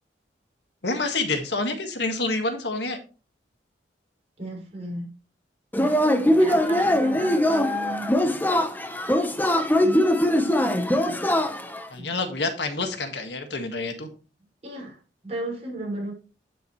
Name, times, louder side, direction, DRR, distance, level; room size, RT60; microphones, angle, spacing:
voice 1, 0.8-3.0 11.9-14.1, left 3 dB, 70° left, 6 dB, 1.7 m, -28 dB
voice 2, 4.4-5.1 6.3-8.1 9.8-11.2 12.0-12.2 14.6-15.0 15.2-16.1, right 2 dB, 35° right, -2 dB, 5.6 m, -35 dB
Yell / Cheering, 5.7-11.8, left 1 dB, 10° left, 1.0 m, -22 dB
11.0 x 7.2 x 3.1 m, 0.33 s
head